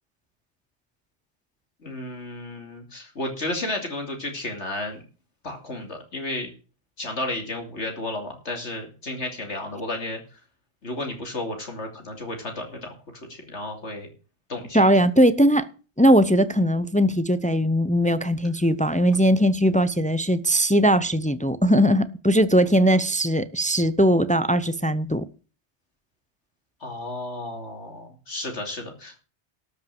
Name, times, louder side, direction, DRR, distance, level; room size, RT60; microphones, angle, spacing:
voice 1, 1.8-5.0 5.4-6.5 7.0-10.2 10.8-12.9 13.3-14.1 14.5-14.8 26.8-29.2, left 2 dB, 80° left, 3.1 m, -32 dB
voice 2, 14.7-15.7 16.0-25.3, equal, 10° left, 0.4 m, -20 dB
13.0 x 5.9 x 7.7 m
omnidirectional pair, 1.2 m